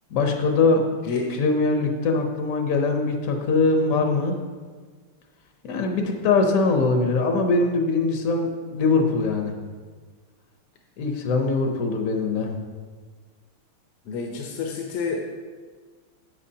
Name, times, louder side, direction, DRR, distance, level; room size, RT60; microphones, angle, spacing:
voice 1, 0.1-0.8 1.3-4.4 5.6-9.6 11.0-12.5, left 3 dB, 65° left, 3 dB, 0.8 m, -22 dB
voice 2, 14.1-15.2, left 5 dB, 90° left, 2 dB, 1.7 m, -28 dB
10.5 x 8.1 x 2.8 m, 1.5 s
omnidirectional pair, 2.4 m